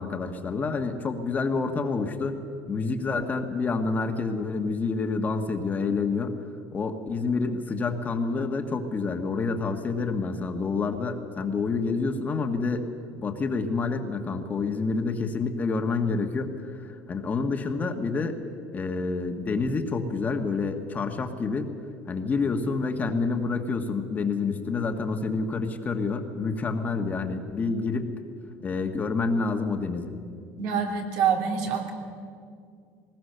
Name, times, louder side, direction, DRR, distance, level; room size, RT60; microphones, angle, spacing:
voice 1, 0.0-2.4 2.7-6.4 6.7-12.9 13.2-18.4 18.7-21.7 22.1-28.1 28.6-30.1, left 4 dB, 25° left, 6 dB, 1.5 m, -28 dB
voice 2, 30.6-31.9, right 7 dB, 70° right, 2 dB, 3.1 m, -26 dB
19.5 x 19.5 x 6.8 m, 2.3 s
cardioid pair, 125°, 6 cm